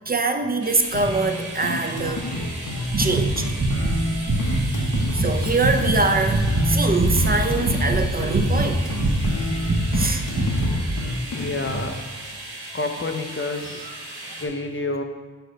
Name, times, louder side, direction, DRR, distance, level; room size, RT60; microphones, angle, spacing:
voice 1, 0.1-2.3 3.0-3.5 4.5-9.0 9.9-10.2, right 3 dB, 25° right, 6 dB, 0.6 m, -24 dB
sound 1, 0.6-14.5, right 1 dB, 80° right, 1.4 m, -37 dB
sound 2, 0.9-11.9, left 1 dB, 55° left, 1.2 m, -30 dB
sound 3, 2.9-5.3 5.6-6.0 6.3-7.4 7.6-8.7 9.0-10.8, right 1 dB, 40° right, 1.0 m, -23 dB
voice 2, 11.3-12.0 12.7-13.9 14.4-15.0, left 3 dB, 30° left, 5 dB, 0.7 m, -28 dB
6.8 x 3.8 x 6.4 m, 1.3 s
wide cardioid pair, 95°, 38 cm